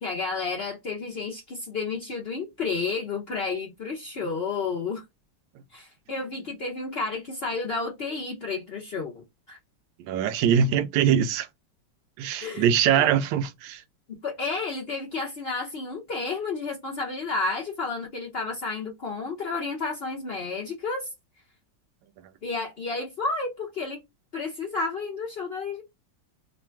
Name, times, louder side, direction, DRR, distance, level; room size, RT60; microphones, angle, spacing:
voice 1, 0.0-5.0 5.7-9.6 12.4-12.7 13.0-13.1 14.1-21.1 22.4-24.0 24.3-25.8, left 4 dB, 80° left, 0.5 m, -31 dB
voice 2, 10.0-11.5 12.2-13.8, right 8 dB, 75° right, 1.2 m, -22 dB
3.2 x 2.3 x 4.3 m
omnidirectional pair, 2.1 m